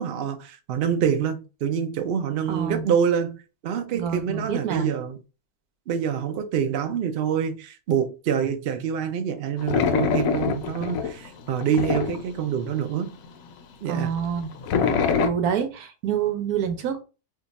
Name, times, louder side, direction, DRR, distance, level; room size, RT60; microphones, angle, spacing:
voice 1, 0.0-5.2 5.9-13.1 13.8-14.1, right 8 dB, 65° right, 0.6 m, -26 dB
voice 2, 2.5-2.9 3.9-4.9 13.9-14.5 15.2-17.0, right 8 dB, 85° right, 1.2 m, -27 dB
sound 1, 9.6-12.9 13.2-13.3 13.5-13.6 14.0-15.3, left 6 dB, 75° left, 1.0 m, -24 dB
2.8 x 2.3 x 4.0 m
omnidirectional pair, 1.5 m